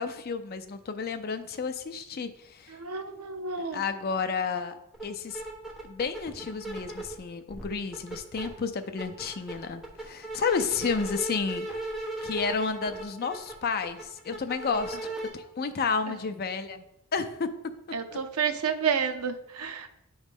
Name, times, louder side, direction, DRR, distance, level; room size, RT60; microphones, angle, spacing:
voice 1, 0.0-2.8 3.7-5.4 5.8-11.7 12.2-15.0 15.3-16.8 17.1-17.5, left 5 dB, 45° left, 9 dB, 0.5 m, -31 dB
voice 2, 2.7-3.8 16.1-16.2 17.9-19.9, right 6 dB, 75° right, 8 dB, 0.6 m, -30 dB
sound 1, 4.9-5.0 5.3-7.2 7.5-8.5 8.8-15.3, right 2 dB, ahead, 1.1 m, -36 dB
8.1 x 3.2 x 5.2 m, 0.86 s
head